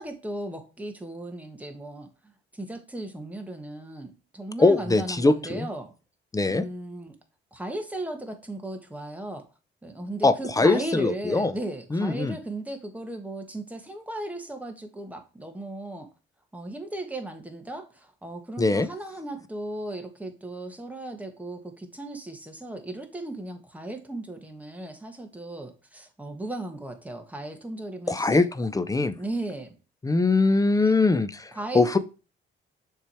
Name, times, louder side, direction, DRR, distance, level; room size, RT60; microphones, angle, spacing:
voice 1, 0.0-5.9 6.5-7.1 7.5-9.4 9.8-16.1 16.5-28.4 29.2-29.8 31.5-32.0, right 1 dB, 5° right, 1.3 m, -36 dB
voice 2, 4.6-5.7 6.3-6.6 10.2-11.5 11.9-12.4 18.6-18.9 28.1-29.2 30.0-32.0, left 3 dB, 15° left, 0.5 m, -22 dB
6.7 x 3.3 x 4.3 m
cardioid pair, 90°, 20 cm